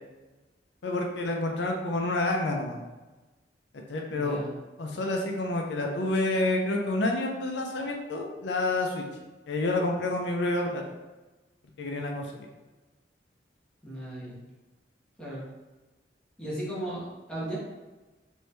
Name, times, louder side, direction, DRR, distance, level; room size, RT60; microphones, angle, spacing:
voice 1, 0.8-2.8 3.7-4.4 4.8-9.0 9.5-10.8 11.8-12.3, left 2 dB, 80° left, 2 dB, 0.5 m, -28 dB
voice 2, 4.1-4.6 13.8-14.4 15.2-15.4 16.4-17.6, right 1 dB, 5° left, -7 dB, 1.0 m, -36 dB
3.1 x 2.6 x 3.2 m, 1.2 s
head